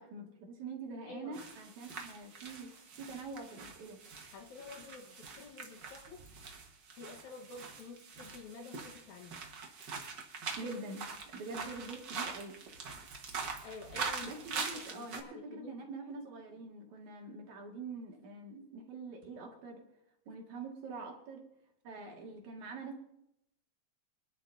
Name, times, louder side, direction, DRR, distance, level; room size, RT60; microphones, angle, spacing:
voice 1, 0.0-2.7 3.0-4.0 10.6-11.0 11.3-12.6 14.2-19.8 20.3-21.5 21.8-23.0, right 3 dB, 70° right, 0 dB, 3.4 m, -45 dB
voice 2, 1.1-1.5 4.3-6.2 7.0-9.4 13.6-15.8, left 4 dB, 75° left, 4 dB, 2.7 m, -50 dB
sound 1, 1.3-15.2, right 5 dB, 45° right, 1.7 m, -43 dB
25.5 x 10.5 x 2.7 m, 0.80 s
omnidirectional pair, 3.5 m